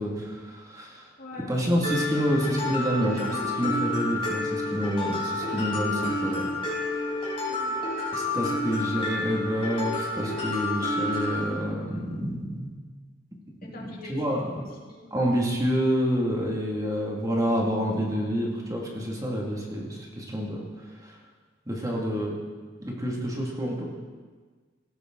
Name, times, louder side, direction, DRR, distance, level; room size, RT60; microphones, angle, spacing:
voice 1, 0.0-1.1 1.5-6.5 8.1-12.7 13.8-14.4 15.1-20.6 21.0-21.2 21.7-22.3 22.8-23.9, equal, 20° right, -2 dB, 2.3 m, -28 dB
voice 2, 1.2-1.5 7.4-7.8 13.6-15.1, left 2 dB, 50° left, -2 dB, 2.9 m, -44 dB
Mallet percussion, 1.8-11.4, left 2 dB, 30° left, 5.6 m, -29 dB
17.5 x 13.5 x 3.9 m, 1.4 s
head